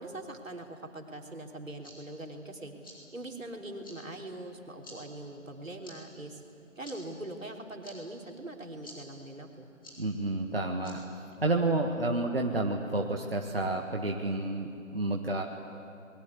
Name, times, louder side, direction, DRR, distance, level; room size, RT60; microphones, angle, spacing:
voice 1, 0.0-6.4 6.8-9.7, right 1 dB, 70° right, 2 dB, 3.6 m, -42 dB
sound 1, 1.5-11.7, equal, 15° left, 3.5 m, -55 dB
voice 2, 10.0-11.0 11.4-15.4, right 2 dB, 45° right, 1 dB, 1.5 m, -30 dB
29.0 x 21.5 x 8.3 m, 2.5 s
figure-of-eight pair, 175°, 40 cm